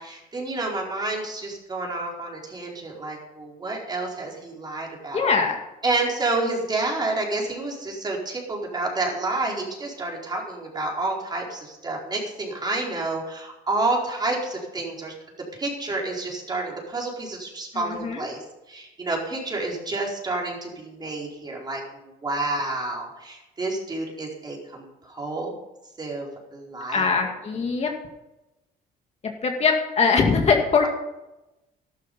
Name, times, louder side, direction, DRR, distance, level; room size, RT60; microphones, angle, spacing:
voice 1, 0.0-5.3 5.8-15.1 15.5-18.4 18.7-25.5 26.0-27.0, right 2 dB, 25° right, -1 dB, 4.5 m, -29 dB
voice 2, 5.1-5.6 17.7-18.3 26.9-27.9 29.2-30.9, left 5 dB, 40° left, 2 dB, 2.2 m, -22 dB
12.5 x 12.0 x 5.6 m, 0.97 s
cardioid pair, 110°, 17 cm